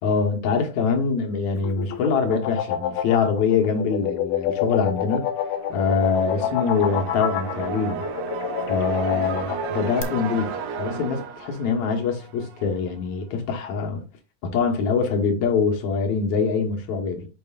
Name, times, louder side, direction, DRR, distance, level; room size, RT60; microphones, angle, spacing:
voice 1, 0.0-5.3 5.7-8.0 8.7-14.0 14.4-17.3, left 5 dB, 60° left, 2.1 m, -24 dB
sound 1, 1.5-10.0, left 10 dB, 85° left, 2.8 m, -28 dB
sound 2, 5.1-12.8, right 6 dB, 85° right, 2.9 m, -33 dB
9.1 x 6.0 x 2.4 m
omnidirectional pair, 4.4 m